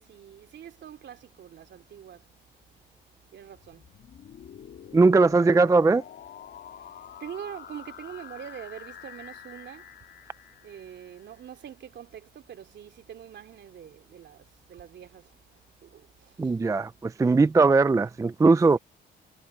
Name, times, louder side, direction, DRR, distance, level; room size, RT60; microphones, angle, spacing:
voice 1, 0.0-2.3 3.3-4.0 6.8-9.9 10.6-16.6, right 9 dB, 65° right, 3.2 m, -44 dB
sound 1, 3.5-11.4, left 9 dB, 60° left, 2.5 m, -47 dB
voice 2, 4.9-6.0 16.4-18.8, right 3 dB, 15° right, 0.4 m, -20 dB
cardioid pair, 90°, 20 cm